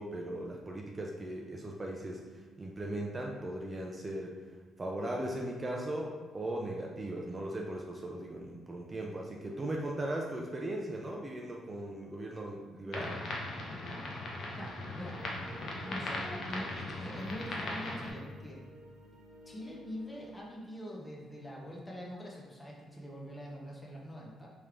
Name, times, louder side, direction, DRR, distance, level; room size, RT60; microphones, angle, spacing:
voice 1, 0.0-4.4 4.8-13.2, right 1 dB, 25° right, -1 dB, 0.5 m, -38 dB
sound 1, 12.9-18.1, left 2 dB, 65° left, 0.8 m, -39 dB
voice 2, 14.6-15.2 15.9-18.6 19.5-24.5, equal, 15° left, -3 dB, 0.9 m, -44 dB
sound 2, 15.1-20.4, equal, 80° right, 0.8 m, -52 dB
3.5 x 3.3 x 3.4 m, 1.4 s
cardioid pair, 90°, 0 cm